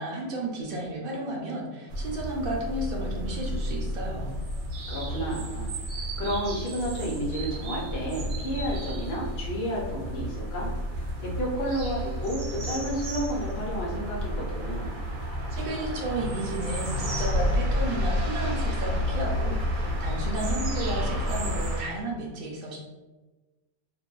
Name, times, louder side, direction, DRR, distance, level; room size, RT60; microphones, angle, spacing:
voice 1, 0.0-4.3 15.5-22.8, right 2 dB, 70° right, -1 dB, 0.5 m, -33 dB
sound 1, 1.9-21.8, equal, 90° right, 1.1 m, -31 dB
voice 2, 4.9-10.7 11.0-15.0, equal, 55° left, -3 dB, 0.8 m, -32 dB
2.6 x 2.1 x 2.3 m, 1.2 s
omnidirectional pair, 1.5 m